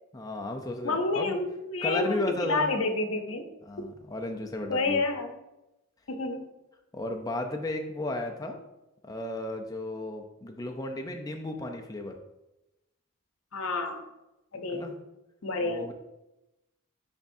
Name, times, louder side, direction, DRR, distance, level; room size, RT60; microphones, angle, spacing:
voice 1, 0.1-1.4 1.8-2.8 3.6-5.0 6.9-8.6 9.0-12.2 14.7-15.0 15.6-15.9, left 1 dB, 15° left, 4 dB, 0.5 m, -34 dB
voice 2, 0.8-3.4 4.7-5.3 6.1-6.5 13.5-14.1 14.5-15.0 15.4-15.9, left 3 dB, 80° left, 6 dB, 0.8 m, -29 dB
9.9 x 3.5 x 2.7 m, 0.94 s
head